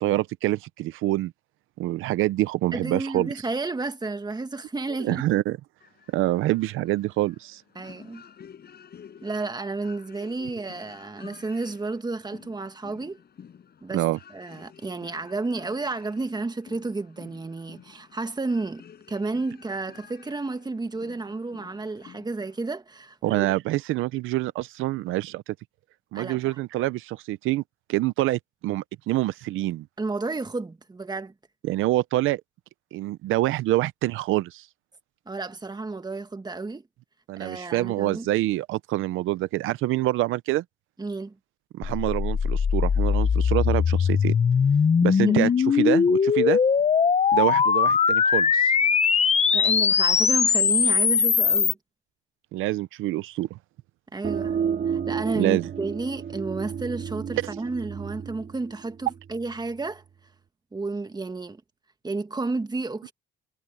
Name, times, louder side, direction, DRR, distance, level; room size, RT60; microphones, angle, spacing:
voice 1, 0.0-1.3 1.8-3.3 5.0-5.6 6.1-7.6 13.9-14.2 23.2-25.5 26.1-27.6 27.9-29.9 31.6-32.4 32.9-34.7 37.3-40.6 41.7-44.4 45.0-46.6 47.3-48.7 52.5-53.5 55.4-55.7, right 16 dB, 90° right, 0.6 m, -26 dB
voice 2, 2.7-5.2 7.8-8.2 9.2-13.2 13.8-14.0 14.3-23.5 26.1-26.6 30.0-31.3 35.3-36.8 37.4-38.3 41.0-41.4 45.3-45.5 49.5-51.8 54.1-54.6 54.9-60.0 60.7-61.6 62.0-63.1, right 3 dB, 20° right, 1.7 m, -31 dB
sound 1, 5.8-22.7, left 8 dB, 55° left, 5.2 m, -51 dB
sound 2, 41.8-51.7, left 6 dB, 35° left, 0.7 m, -21 dB
sound 3, 54.2-59.6, right 7 dB, 55° right, 3.1 m, -32 dB
cardioid pair, 90°, 20 cm